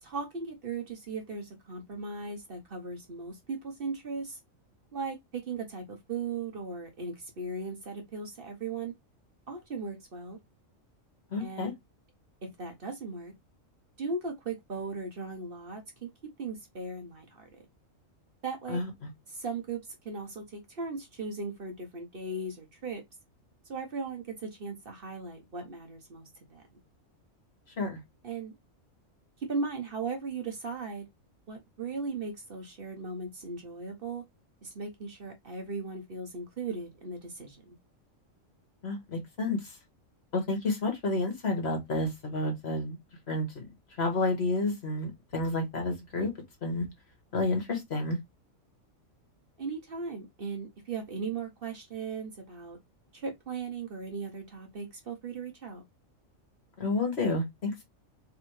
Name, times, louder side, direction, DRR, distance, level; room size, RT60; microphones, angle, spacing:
voice 1, 0.0-4.4 4.9-8.9 9.5-10.4 11.4-11.7 12.4-13.3 14.0-17.5 18.4-18.8 19.3-23.0 23.7-26.6 28.2-28.5 29.4-31.1 31.5-34.2 34.6-37.7 49.6-52.8 53.1-55.8, right 4 dB, 50° right, 1.0 m, -37 dB
voice 2, 11.3-11.7 18.7-18.9 27.8-28.0 38.8-39.7 40.3-43.0 43.3-43.7 44.0-46.3 46.6-46.9 47.3-48.2 56.8-57.8, left 2 dB, 55° left, 1.5 m, -30 dB
3.4 x 3.4 x 3.1 m
omnidirectional pair, 1.4 m